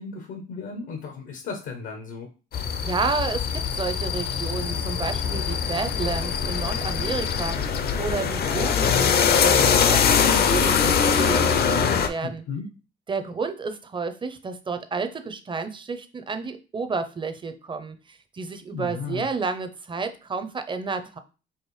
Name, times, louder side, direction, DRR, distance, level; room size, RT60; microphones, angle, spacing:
voice 1, 0.0-2.3 12.2-12.7 18.7-19.3, left 5 dB, 85° left, 4 dB, 0.8 m, -35 dB
sound 1, 2.5-12.1, left 7 dB, 55° left, 0.5 m, -22 dB
voice 2, 2.8-7.6 8.0-12.4 13.1-21.2, right 4 dB, 25° right, 9 dB, 0.5 m, -31 dB
4.7 x 2.5 x 3.1 m, 0.33 s
cardioid pair, 90°, 20 cm